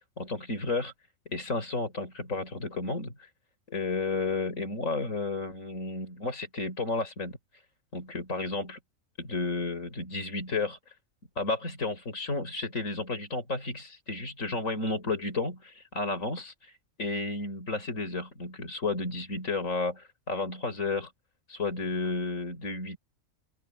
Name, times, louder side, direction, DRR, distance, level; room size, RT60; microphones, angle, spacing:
voice 1, 0.2-0.9 1.3-3.3 3.7-7.4 7.9-8.8 9.2-10.8 11.4-16.7 17.0-21.1 21.5-23.0, left 3 dB, 85° left, 5.1 m, -32 dB
open air
omnidirectional pair, 1.3 m